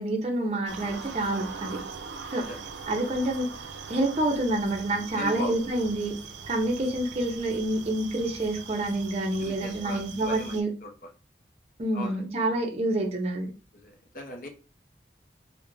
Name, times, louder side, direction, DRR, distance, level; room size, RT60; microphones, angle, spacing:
voice 1, 0.0-1.8 2.3-2.4 2.9-3.5 3.9-6.2 6.4-10.7 11.8-13.5, right 1 dB, 35° right, 1 dB, 0.5 m, -28 dB
sound 1, 0.7-10.6, right 5 dB, 85° right, 0.4 m, -41 dB
voice 2, 5.1-5.7 9.4-10.9 11.9-12.2 13.7-14.5, left 1 dB, 50° left, 3 dB, 0.5 m, -38 dB
2.3 x 2.1 x 3.1 m, 0.33 s
head